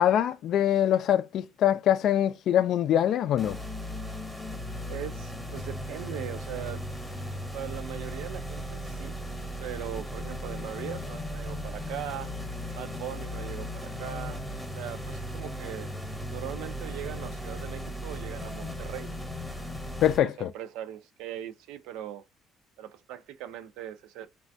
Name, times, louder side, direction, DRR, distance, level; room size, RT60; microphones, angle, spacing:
voice 1, 0.0-3.6 20.0-20.5, left 11 dB, 65° left, 0.3 m, -24 dB
sound 1, 3.4-20.2, equal, 5° left, 0.9 m, -37 dB
voice 2, 4.9-6.8 7.5-9.1 9.6-12.3 12.8-14.4 14.7-15.9 16.3-19.1 20.2-22.2 22.8-24.3, right 11 dB, 85° right, 0.4 m, -40 dB
3.2 x 2.2 x 2.6 m
cardioid pair, 110°, 0 cm